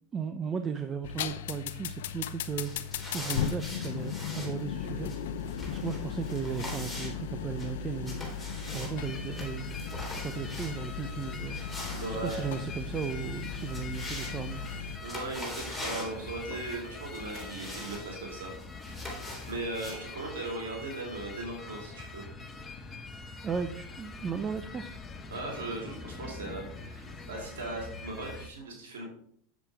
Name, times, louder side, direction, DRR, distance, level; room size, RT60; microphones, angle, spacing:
voice 1, 0.1-5.1 5.4-9.7 10.2-11.6 12.1-14.6 23.4-25.0, right 6 dB, 25° right, 8 dB, 0.6 m, -36 dB
sound 1, 1.0-15.0, left 7 dB, 80° left, 0.5 m, -37 dB
sound 2, 2.5-20.0, left 1 dB, ahead, 3.5 m, -44 dB
sound 3, 9.0-28.5, left 3 dB, 20° left, 1.0 m, -44 dB
voice 2, 11.9-12.5 15.0-19.2 19.4-22.3 25.3-29.0, right 2 dB, 85° right, -2 dB, 2.8 m, -38 dB
8.2 x 7.3 x 3.4 m, 0.64 s
hypercardioid pair, 110°, 0 cm